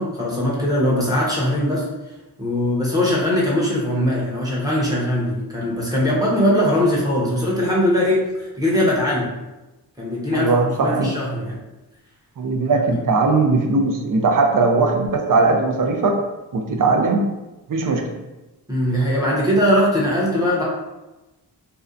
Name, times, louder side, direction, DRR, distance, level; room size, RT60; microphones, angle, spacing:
voice 1, 0.0-1.8 2.4-9.3 10.0-11.5 12.9-13.0 18.7-20.6, left 1 dB, 10° right, -6 dB, 0.7 m, -20 dB
voice 2, 10.3-11.1 12.4-16.2 16.5-17.2 17.7-18.0, right 3 dB, 50° right, 3 dB, 0.5 m, -19 dB
2.6 x 2.1 x 2.4 m, 1.0 s
wide cardioid pair, 65°, 41 cm